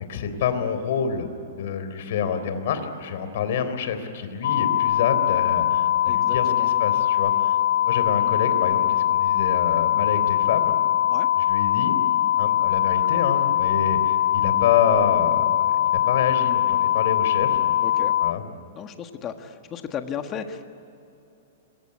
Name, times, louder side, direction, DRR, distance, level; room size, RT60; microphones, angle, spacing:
voice 1, 0.1-1.3 1.6-7.6 7.9-10.7 11.4-12.0 12.4-17.8 18.2-18.4, left 7 dB, 55° left, 9 dB, 3.7 m, -27 dB
sound 1, 4.4-18.3, left 12 dB, 75° left, 0.6 m, -22 dB
voice 2, 6.1-6.7 11.1-11.3 13.1-13.2 17.8-18.1 18.7-20.7, left 8 dB, 20° left, 7 dB, 1.5 m, -35 dB
26.5 x 23.0 x 9.7 m, 2.8 s
supercardioid pair, 170°, 0 cm